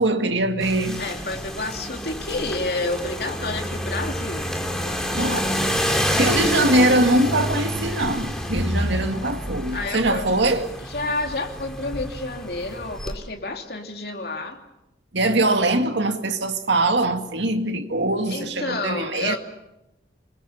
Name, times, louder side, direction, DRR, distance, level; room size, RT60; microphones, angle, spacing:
voice 1, 0.0-1.0 5.1-5.5 6.2-10.6 15.1-19.4, right 2 dB, 85° right, 2.1 m, -22 dB
sound 1, 0.6-13.2, equal, 5° left, 2.8 m, -28 dB
voice 2, 0.9-4.5 9.7-10.4 10.8-14.6 18.3-19.4, left 2 dB, 60° left, 2.9 m, -30 dB
26.5 x 21.5 x 7.0 m
head